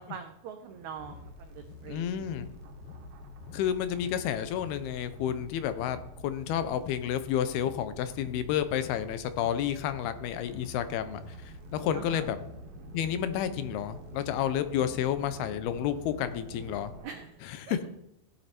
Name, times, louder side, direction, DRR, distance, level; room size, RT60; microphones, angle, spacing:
voice 1, 0.0-2.4 11.9-12.2 17.0-17.2 17.7-17.8, right 7 dB, 85° right, 7 dB, 1.6 m, -43 dB
sound 1, 0.7-17.3, right 5 dB, 70° right, 2.6 m, -52 dB
sound 2, 1.0-17.0, left 3 dB, 70° left, 3.0 m, -47 dB
voice 2, 1.8-2.5 3.5-12.4 12.9-16.9 17.4-17.9, left 10 dB, 85° left, 11 dB, 2.8 m, -31 dB
16.5 x 7.8 x 4.4 m, 0.81 s
omnidirectional pair, 4.4 m